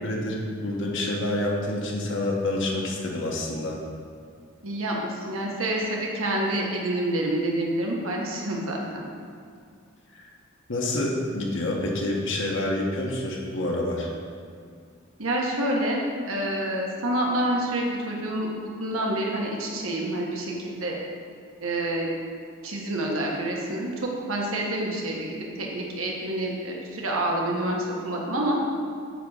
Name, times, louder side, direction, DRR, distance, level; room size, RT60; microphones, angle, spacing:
voice 1, 0.0-3.7 10.1-10.2 10.7-14.1, left 1 dB, 60° left, -1 dB, 1.2 m, -28 dB
voice 2, 4.6-9.1 15.2-21.0 21.6-22.1 22.6-28.6, right 1 dB, 70° right, -1 dB, 1.4 m, -28 dB
9.1 x 3.7 x 6.6 m, 2.2 s
head